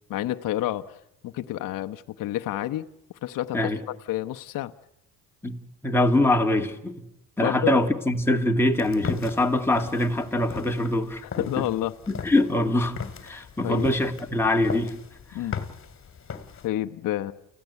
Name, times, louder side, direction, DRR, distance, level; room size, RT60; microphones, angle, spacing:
voice 1, 0.1-2.9 3.2-4.7 7.4-7.7 11.2-12.0 13.6-13.9 15.3-15.6 16.6-17.3, left 14 dB, 65° left, 0.9 m, -29 dB
voice 2, 5.8-7.0 7.4-11.5 12.1-14.9 15.3-15.4, left 1 dB, 5° left, 2.2 m, -23 dB
sound 1, 8.7-16.7, left 6 dB, 35° left, 2.3 m, -38 dB
29.5 x 15.5 x 8.1 m
cardioid pair, 110°, 35 cm